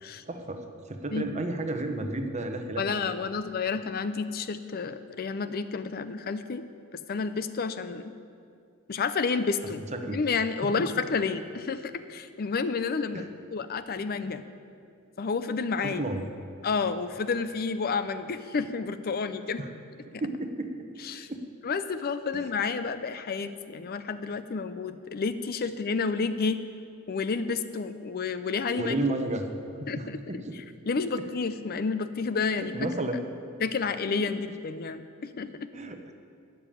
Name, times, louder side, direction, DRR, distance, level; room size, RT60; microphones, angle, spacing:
voice 1, 0.3-3.0 9.9-10.2 10.6-10.7 13.1-13.3 15.8-16.3 19.6-19.7 20.1-20.9 21.3-21.4 22.3-22.4 28.8-29.5 29.8-30.6 31.1-31.3 32.6-33.2 35.7-36.1, right 2 dB, 30° right, 6 dB, 0.9 m, -32 dB
voice 2, 2.8-6.6 6.9-8.1 8.9-14.4 15.2-16.0 16.6-19.6 21.0-21.3 21.6-26.6 27.1-28.9 29.9-32.7 33.6-35.0 35.4-35.5, left 4 dB, 45° left, 12 dB, 0.5 m, -30 dB
12.5 x 6.8 x 9.0 m, 2.4 s
head